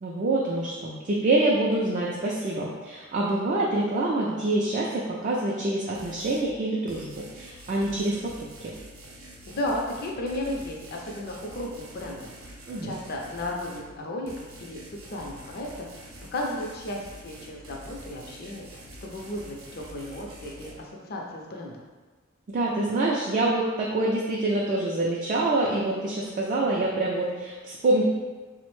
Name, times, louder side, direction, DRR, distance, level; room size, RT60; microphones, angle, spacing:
voice 1, 0.0-8.3 8.6-8.7 12.7-12.9 22.5-28.0, right 2 dB, 40° right, -4 dB, 0.3 m, -26 dB
sound 1, 6.0-6.5 6.9-13.9 14.3-20.7, right 1 dB, 85° right, 0.6 m, -46 dB
voice 2, 9.4-21.8, left 1 dB, 50° left, -1 dB, 0.5 m, -34 dB
3.3 x 2.1 x 3.1 m, 1.3 s
head